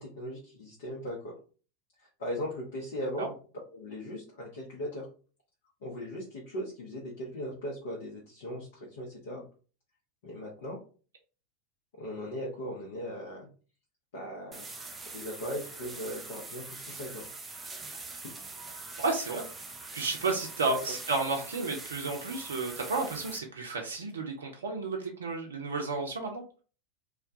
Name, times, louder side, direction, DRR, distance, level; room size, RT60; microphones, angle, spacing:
voice 1, 0.0-1.4 2.0-3.3 3.7-5.1 5.8-9.4 10.2-10.8 12.0-13.5 14.1-14.7 15.1-17.3 20.6-20.8, equal, 65° left, -3 dB, 0.7 m, -38 dB
sound 1, 14.5-23.4, right 3 dB, 15° right, 0.5 m, -43 dB
voice 2, 19.0-19.4 19.9-26.4, right 3 dB, 75° right, 2 dB, 0.4 m, -32 dB
2.2 x 2.2 x 2.6 m, 0.38 s
figure-of-eight pair, 85°, 0 cm